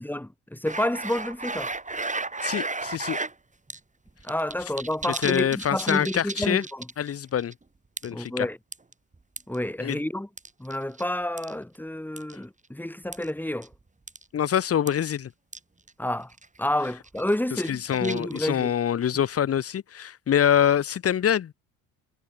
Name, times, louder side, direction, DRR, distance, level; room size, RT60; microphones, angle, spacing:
voice 1, 0.0-1.7 4.2-6.9 8.1-8.6 9.5-10.3 10.6-13.7 16.0-16.3 16.6-18.7, left 1 dB, 5° left, 2.1 m, -29 dB
sound 1, 0.6-3.3 3.7-3.8 4.1-7.1 7.4-7.5 8.0-8.3 8.7-9.6 10.4-11.0 11.4-11.5 12.2-12.3 13.1-13.3 13.6-13.7 14.1-14.2 14.5-14.6 14.9-15.0 15.5-15.6 15.9-16.0 16.3-16.6 17.0-18.6, right 3 dB, 15° right, 4.4 m, -34 dB
voice 2, 2.4-3.2 5.2-6.6 7.0-7.5 8.0-8.5 9.8-10.0 14.3-15.3 17.7-21.5, left 9 dB, 35° left, 0.9 m, -25 dB
hypercardioid pair, 65°, 41 cm